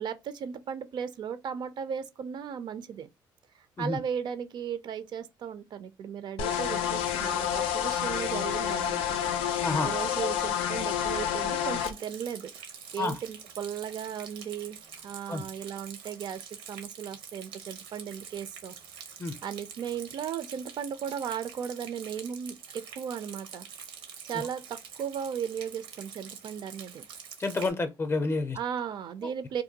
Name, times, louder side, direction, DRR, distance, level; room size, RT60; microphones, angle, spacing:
voice 1, 0.0-3.1 3.8-9.2 9.8-14.8 15.0-18.7 19.4-23.7 24.2-27.1 28.5-29.6, right 8 dB, 55° right, 0.4 m, -36 dB
sound 1, 6.4-11.9, left 9 dB, 90° left, 0.4 m, -29 dB
Rain, 11.8-27.7, right 7 dB, 85° right, 0.7 m, -46 dB
voice 2, 27.4-28.6, left 3 dB, 25° left, 0.5 m, -29 dB
2.6 x 2.2 x 2.7 m
cardioid pair, 100°, 9 cm